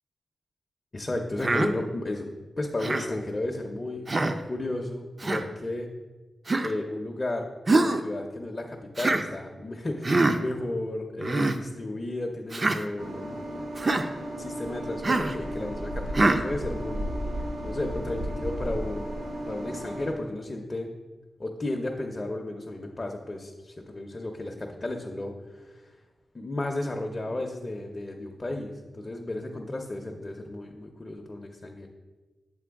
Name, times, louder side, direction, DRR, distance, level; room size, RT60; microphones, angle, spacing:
voice 1, 0.9-2.3 2.6-5.9 6.6-7.5 7.7-13.6 14.4-17.1 17.6-19.1 19.5-20.9 21.4-26.0 26.3-31.9, left 2 dB, 30° left, 2 dB, 0.5 m, -33 dB
Human voice, 1.4-1.7 2.8-3.1 4.1-4.4 5.2-5.4 6.5-6.7 7.7-8.0 9.0-9.2 10.0-10.4 11.2-11.6 12.5-12.8 13.8-14.1 15.0-15.3 16.1-16.4, right 2 dB, 35° right, 0.4 m, -24 dB
sound 1, 13.0-20.1, equal, 85° right, 1.0 m, -34 dB
7.6 x 4.4 x 3.5 m, 1.2 s
wide cardioid pair, 110°, 0 cm